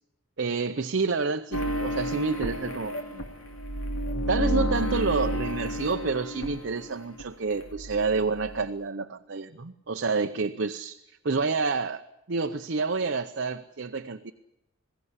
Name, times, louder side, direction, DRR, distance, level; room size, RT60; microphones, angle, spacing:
voice 1, 0.4-3.2 4.3-11.0 11.2-12.0 12.3-14.3, right 4 dB, 55° right, 6 dB, 0.7 m, -28 dB
sound 1, 1.5-7.2 7.5-8.7, equal, 70° left, 2.7 m, -31 dB
21.5 x 17.0 x 9.6 m, 0.87 s
head